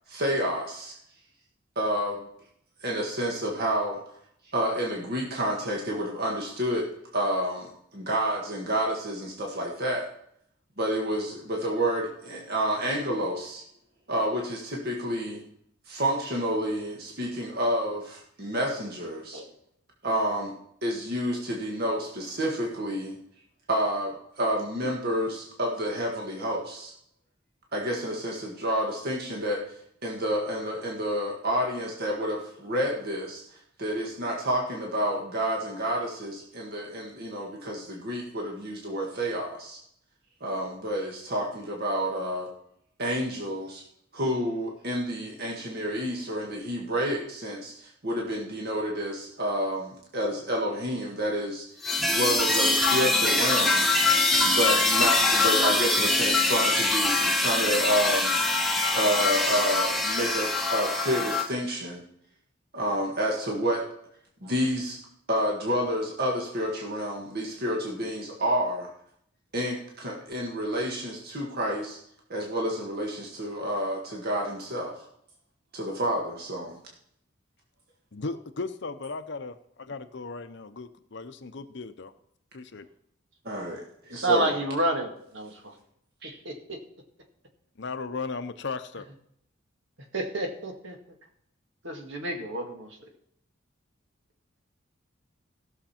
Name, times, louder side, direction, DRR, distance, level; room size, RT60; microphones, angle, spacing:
voice 1, 0.1-0.9 1.7-2.2 2.8-4.0 4.5-10.1 10.8-13.6 14.1-15.4 15.9-19.4 20.0-20.5 20.8-23.2 23.7-26.9 27.7-29.6 30.0-39.8 40.4-42.5 43.0-43.8 44.1-51.6 52.0-53.9 54.4-58.3 58.9-62.0 62.7-63.8 64.4-65.0 65.3-68.9 69.5-72.0 72.3-75.0 75.7-76.8 83.4-84.5 86.2-86.3, equal, 55° right, -1 dB, 1.8 m, -29 dB
sound 1, 51.8-61.5, left 2 dB, ahead, 1.0 m, -23 dB
voice 2, 78.1-82.1 82.5-82.9 87.8-89.1, left 4 dB, 65° left, 11 dB, 0.7 m, -36 dB
voice 3, 84.1-85.7 86.5-86.8 90.1-91.0 91.8-92.9, right 1 dB, 70° right, 3 dB, 2.0 m, -29 dB
16.0 x 6.6 x 4.4 m, 0.71 s
head